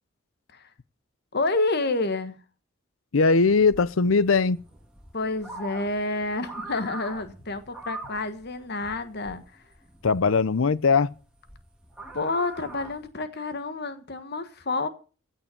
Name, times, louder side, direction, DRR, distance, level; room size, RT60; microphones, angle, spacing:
voice 1, 1.3-2.4 5.1-9.4 12.1-14.9, left 2 dB, 50° left, 1.4 m, -29 dB
voice 2, 3.1-4.6 10.0-11.1, left 4 dB, 70° left, 0.6 m, -20 dB
sound 1, 3.4-13.1, right 2 dB, 5° right, 2.7 m, -43 dB
16.0 x 5.6 x 8.3 m
head